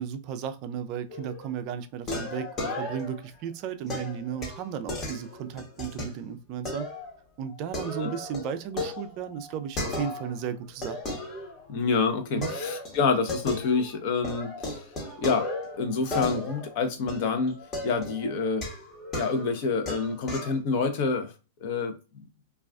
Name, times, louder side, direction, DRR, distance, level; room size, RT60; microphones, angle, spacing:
voice 1, 0.0-6.9 7.4-11.0 12.3-12.5, right 8 dB, 45° right, 0.3 m, -34 dB
sound 1, 1.1-1.5 2.1-3.3 3.9-6.1 6.7-7.1 7.5-10.4 10.8-11.9 12.4-14.0 14.2-20.6, left 2 dB, 30° left, 0.9 m, -35 dB
voice 2, 11.7-14.9 15.2-15.5 15.8-17.6 17.8-18.7 19.1-21.3 21.6-21.9, left 4 dB, 55° left, 0.6 m, -27 dB
2.3 x 2.3 x 2.3 m
hypercardioid pair, 120°, 0 cm